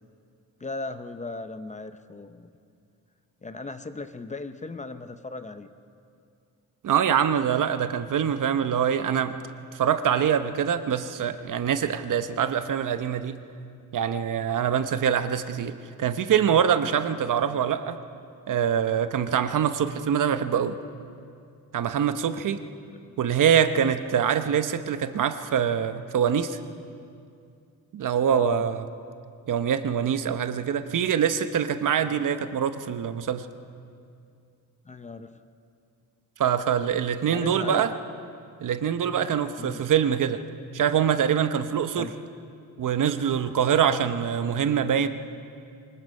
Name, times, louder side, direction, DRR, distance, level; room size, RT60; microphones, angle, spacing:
voice 1, 0.6-2.5 3.4-5.7 17.3-17.6 23.1-23.2 28.3-28.6 32.0-32.2 34.9-35.4 37.3-37.9 39.6-39.8 42.0-42.2, left 3 dB, 20° left, 10 dB, 0.7 m, -37 dB
voice 2, 6.8-9.4 9.7-13.4 13.9-18.0 18.5-20.7 21.7-22.6 23.2-26.6 27.9-28.8 29.5-33.5 36.4-37.9 38.6-40.4 40.7-42.1 42.8-45.1, right 8 dB, 60° right, 10 dB, 0.9 m, -24 dB
24.0 x 20.5 x 5.5 m, 2.4 s
wide cardioid pair, 145°, 36 cm